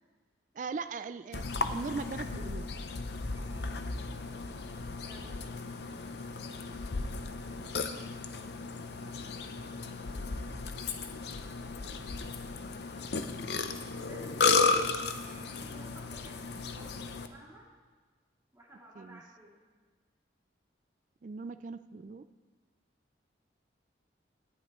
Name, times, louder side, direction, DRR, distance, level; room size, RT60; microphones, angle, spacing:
voice 1, 0.5-1.4 1.7-2.7 19.0-19.2 21.2-22.3, right 4 dB, 40° right, 11 dB, 0.3 m, -39 dB
Burping eructation, 1.3-17.3, left 4 dB, 60° left, 0.6 m, -34 dB
voice 2, 3.3-4.1 4.9-5.4 7.0-8.0 13.9-17.6 18.5-19.6, right 1 dB, 15° right, -6 dB, 2.7 m, -55 dB
17.5 x 11.0 x 3.1 m, 1.4 s
head